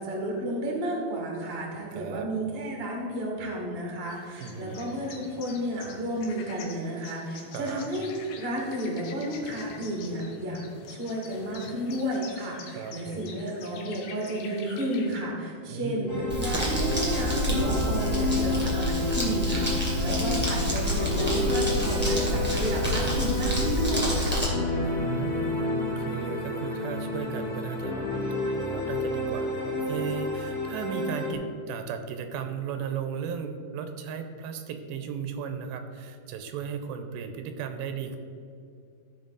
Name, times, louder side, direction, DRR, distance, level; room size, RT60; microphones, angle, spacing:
voice 1, 0.0-8.1 8.4-10.6 10.9-16.1 16.3-24.4, right 1 dB, 50° right, -2 dB, 0.7 m, -32 dB
voice 2, 1.9-2.3 4.4-4.8 7.5-7.9 12.8-13.4 15.7-16.2 20.0-20.2 24.8-28.0 28.6-38.2, right 7 dB, 90° right, 7 dB, 2.5 m, -36 dB
sound 1, 4.1-15.2, left 5 dB, 85° left, 3.0 m, -46 dB
Decay - Depressive melodic ambiant, 16.1-31.3, left 2 dB, 50° left, 2.5 m, -30 dB
Crumpling crinkling, 16.3-24.5, equal, 5° right, 0.8 m, -28 dB
14.0 x 5.2 x 4.0 m, 2.4 s
omnidirectional pair, 4.3 m